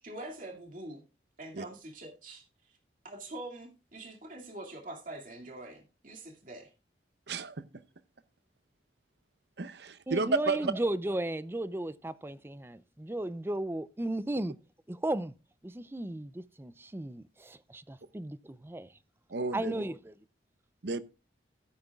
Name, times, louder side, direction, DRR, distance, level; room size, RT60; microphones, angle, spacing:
voice 1, 0.0-1.0 1.4-2.4 3.0-6.7, right 1 dB, 45° right, 2.3 m, -44 dB
voice 2, 7.3-7.6 9.6-10.7 19.3-19.8 20.8-21.0, right 3 dB, 65° right, 0.8 m, -31 dB
voice 3, 10.1-14.6 14.9-15.3 15.6-18.9 19.5-20.1, right 1 dB, 15° right, 0.4 m, -35 dB
15.5 x 8.8 x 2.3 m
head